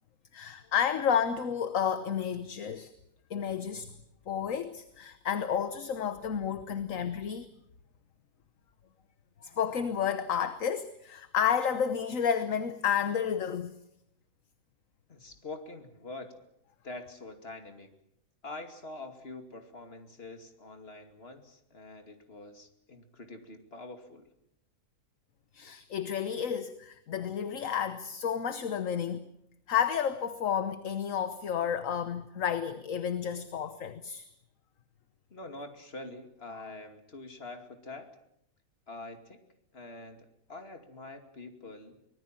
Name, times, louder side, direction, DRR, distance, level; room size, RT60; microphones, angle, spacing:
voice 1, 0.3-2.9 3.3-3.9 4.3-7.5 9.4-13.8 25.5-29.2 29.7-34.3, left 8 dB, 65° left, 1.4 m, -31 dB
voice 2, 15.1-16.4 16.8-17.9 18.4-24.3 35.3-38.2 38.9-39.4 39.7-42.0, left 2 dB, 40° left, 2.8 m, -45 dB
25.0 x 19.5 x 7.6 m
omnidirectional pair, 1.5 m